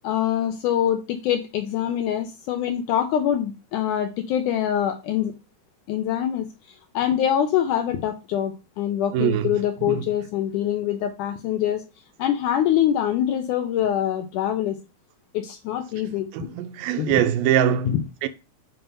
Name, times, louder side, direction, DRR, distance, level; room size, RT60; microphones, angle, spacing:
voice 1, 0.0-5.3 5.9-6.5 6.9-11.8 12.2-14.8 15.3-16.5 16.9-17.2, left 10 dB, 80° left, 1.8 m, -24 dB
voice 2, 9.1-9.6 9.9-10.0 16.3-18.3, right 10 dB, 80° right, 2.2 m, -23 dB
7.0 x 2.8 x 5.4 m
omnidirectional pair, 4.2 m